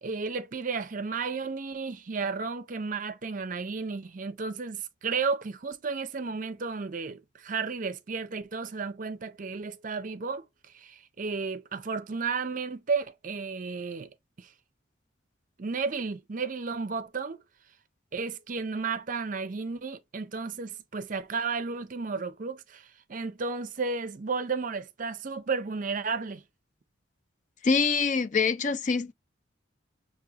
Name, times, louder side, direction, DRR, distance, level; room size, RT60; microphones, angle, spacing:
voice 1, 0.0-10.5 10.7-14.1 14.4-14.5 15.6-17.4 18.1-26.4, right 4 dB, 40° right, 0.5 m, -33 dB
voice 2, 27.6-29.1, left 5 dB, 40° left, 0.4 m, -25 dB
6.2 x 2.7 x 2.8 m
head